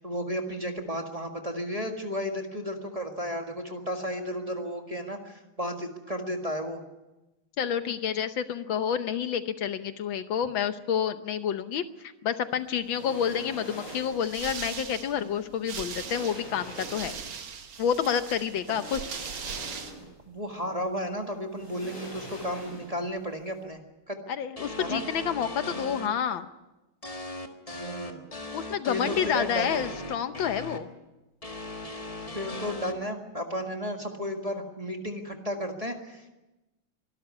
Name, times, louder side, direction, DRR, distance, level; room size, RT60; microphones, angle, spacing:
voice 1, 0.0-6.8 20.3-23.8 24.1-24.2 24.8-25.0 27.7-28.3 28.9-29.8 32.3-36.3, equal, 20° right, 3 dB, 1.6 m, -33 dB
voice 2, 7.6-17.2 17.8-19.0 24.3-26.5 28.5-30.9, left 8 dB, 70° left, 11 dB, 1.5 m, -29 dB
sound 1, 12.8-14.3 15.4-15.5 15.8-17.4 18.5-20.2 20.6-20.7 21.5-23.1 23.4-23.5, right 1 dB, 50° left, 8.6 m, -43 dB
sound 2, 13.9-19.9, right 7 dB, 70° right, 2.3 m, -40 dB
sound 3, 24.6-26.1 27.0-30.8 31.4-32.9, left 2 dB, 20° left, 1.5 m, -38 dB
24.0 x 12.5 x 9.6 m, 1.0 s
omnidirectional pair, 2.3 m